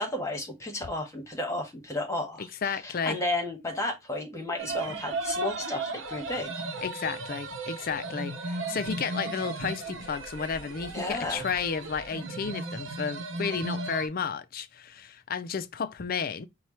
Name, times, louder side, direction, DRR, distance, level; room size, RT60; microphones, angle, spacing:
voice 1, 0.0-6.6 10.9-11.4, left 2 dB, 15° left, 1.4 m, -33 dB
voice 2, 2.6-3.2 6.8-16.5, left 6 dB, 50° left, 0.4 m, -32 dB
sound 1, 4.6-14.1, right 2 dB, 85° right, 0.8 m, -35 dB
4.5 x 2.3 x 4.3 m
head